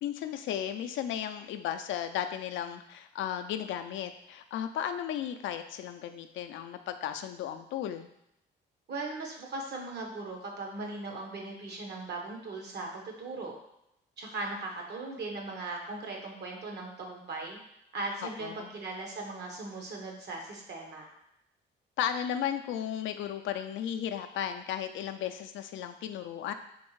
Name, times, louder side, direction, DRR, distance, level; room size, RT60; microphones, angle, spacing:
voice 1, 0.0-8.1 18.4-18.7 22.0-26.5, left 10 dB, 75° left, 8 dB, 0.4 m, -35 dB
voice 2, 8.9-13.6 14.2-17.6 17.9-21.1, right 3 dB, 60° right, 1 dB, 1.1 m, -38 dB
4.3 x 3.2 x 3.1 m, 0.82 s
cardioid pair, 90°, 20 cm